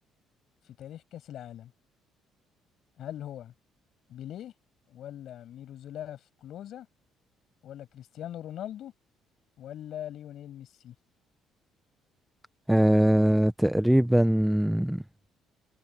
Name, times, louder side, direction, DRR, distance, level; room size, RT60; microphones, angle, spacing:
voice 1, 0.8-1.7 3.0-3.5 4.1-4.5 4.9-6.9 7.6-8.9 9.6-10.9, left 11 dB, 55° left, 6.4 m, -41 dB
voice 2, 12.7-15.0, right 1 dB, ahead, 0.5 m, -22 dB
cardioid pair, 155°, 0 cm